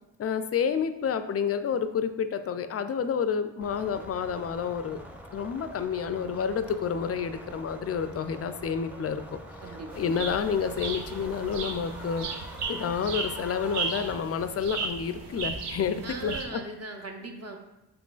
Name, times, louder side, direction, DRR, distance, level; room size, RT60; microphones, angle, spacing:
voice 1, 0.2-5.0 5.3-9.4 9.9-12.3 12.7-16.6, left 7 dB, 35° left, 10 dB, 0.4 m, -29 dB
sound 1, 3.6-14.1, right 1 dB, 5° right, 0.7 m, -44 dB
voice 2, 9.6-10.4 16.0-17.6, right 3 dB, 35° right, 2 dB, 0.8 m, -39 dB
sound 2, 9.9-16.5, right 4 dB, 80° right, 0.7 m, -36 dB
4.8 x 3.7 x 2.4 m, 0.91 s
supercardioid pair, 40°, 41 cm